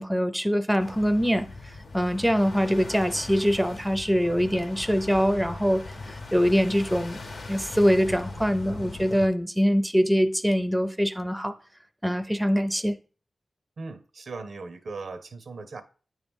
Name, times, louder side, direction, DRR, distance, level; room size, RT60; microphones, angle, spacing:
voice 1, 0.0-7.2 7.5-11.5 12.0-13.0, equal, 5° right, 0.5 m, -24 dB
sound 1, 0.8-9.3, left 3 dB, 70° left, 0.9 m, -40 dB
voice 2, 13.8-15.8, right 3 dB, 75° right, 0.6 m, -38 dB
9.1 x 3.1 x 3.5 m
cardioid pair, 65°, 0 cm